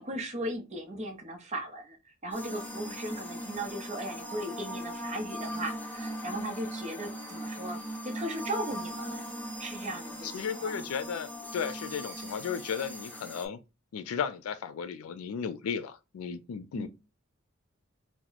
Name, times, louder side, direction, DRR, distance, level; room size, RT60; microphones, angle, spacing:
voice 1, 0.0-9.3 9.6-10.8 16.7-16.9, right 1 dB, 35° right, 0.8 m, -37 dB
sound 1, 2.3-13.5, equal, 10° left, 0.4 m, -39 dB
voice 2, 10.2-13.6 13.9-16.9, left 7 dB, 85° left, 0.3 m, -35 dB
3.0 x 2.0 x 3.8 m
head